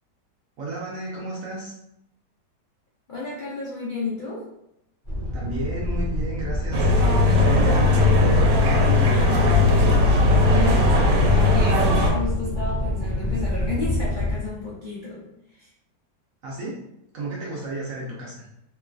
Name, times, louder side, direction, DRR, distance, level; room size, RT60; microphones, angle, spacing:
voice 1, 0.6-1.7 5.3-6.9 7.3-9.5 16.4-16.8 17.1-18.4, right 2 dB, 65° right, -4 dB, 0.9 m, -32 dB
voice 2, 3.1-4.5 10.4-15.7, left 3 dB, 60° left, -9 dB, 0.5 m, -32 dB
sound 1, 5.0-14.3, left 1 dB, 20° left, 0.8 m, -26 dB
sound 2, 6.7-12.1, left 2 dB, 90° right, 1.2 m, -18 dB
3.0 x 2.4 x 2.3 m, 0.80 s
omnidirectional pair, 1.8 m